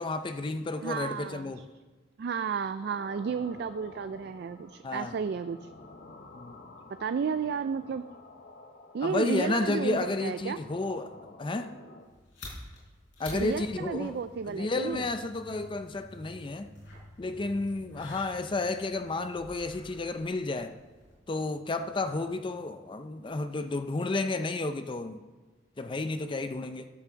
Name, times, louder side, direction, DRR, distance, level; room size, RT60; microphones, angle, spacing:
voice 1, 0.0-1.6 4.8-5.1 6.4-6.6 9.0-11.7 13.2-16.7 17.2-20.8 21.3-25.2 25.8-26.9, left 2 dB, 25° left, 0.4 m, -32 dB
voice 2, 0.8-1.6 2.2-5.7 7.0-8.0 8.9-10.6 13.3-15.1, right 6 dB, 55° right, 0.3 m, -32 dB
sound 1, 2.8-12.1, left 2 dB, 55° left, 0.9 m, -51 dB
sound 2, 12.0-21.1, left 2 dB, 75° left, 4.2 m, -50 dB
sound 3, 13.3-23.9, equal, 90° left, 1.8 m, -54 dB
12.0 x 5.9 x 6.9 m
head